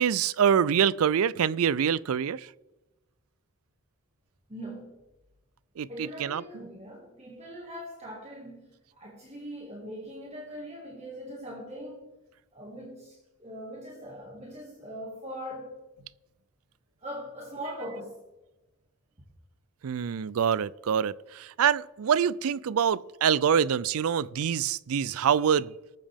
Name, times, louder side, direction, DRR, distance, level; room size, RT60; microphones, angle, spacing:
voice 1, 0.0-2.5 5.8-6.4 19.8-25.7, right 8 dB, 80° right, 0.4 m, -25 dB
voice 2, 4.5-5.0 5.9-8.7 9.0-12.1 12.5-15.8 17.0-18.2, equal, 30° right, 1.9 m, -41 dB
19.0 x 7.3 x 3.5 m
head